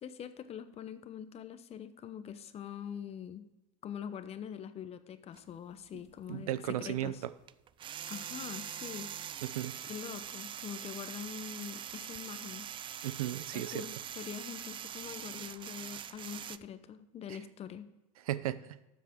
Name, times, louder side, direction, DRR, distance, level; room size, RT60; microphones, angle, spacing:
voice 1, 0.0-3.5 3.8-7.2 8.1-9.4 9.9-12.7 13.5-17.9, left 8 dB, 35° left, 11 dB, 0.9 m, -44 dB
sound 1, 5.3-5.4 7.5-16.6, right 9 dB, 30° right, 0.4 m, -43 dB
voice 2, 6.3-7.3 9.5-9.8 13.0-13.9 17.3-17.4 18.3-18.8, right 13 dB, 90° right, 16 dB, 0.6 m, -35 dB
12.5 x 7.5 x 3.7 m, 1.0 s
supercardioid pair, 105°, 18 cm